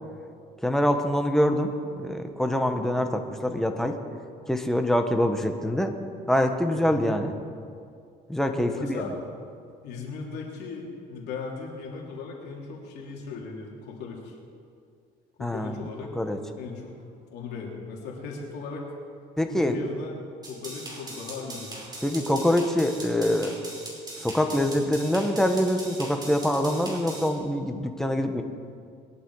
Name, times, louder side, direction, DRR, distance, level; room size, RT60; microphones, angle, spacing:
voice 1, 0.6-3.9 4.5-5.9 6.3-7.3 8.3-9.0 15.4-15.8 16.2-16.4 19.4-19.8 22.0-23.5 24.2-28.4, left 1 dB, ahead, 5 dB, 1.4 m, -25 dB
voice 2, 8.6-9.1 9.8-14.4 15.4-16.2 16.6-17.0 17.3-18.9 19.5-20.2 20.5-21.8 24.7-24.9, left 4 dB, 80° left, -1 dB, 3.2 m, -38 dB
sound 1, 20.4-27.3, right 2 dB, 25° right, 4.7 m, -40 dB
21.5 x 11.5 x 4.9 m, 2.3 s
cardioid pair, 110°, 17 cm